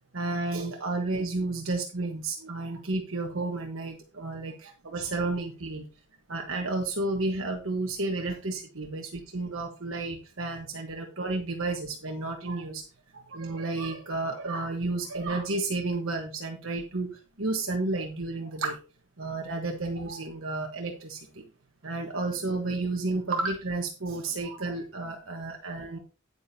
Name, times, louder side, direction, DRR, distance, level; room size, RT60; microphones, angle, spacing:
voice 1, 0.1-5.8 6.3-12.8 13.1-17.1 17.4-18.8 19.2-21.4 21.8-26.0, right 2 dB, 65° right, 2 dB, 1.3 m, -31 dB
9.6 x 9.5 x 2.8 m, 0.35 s
head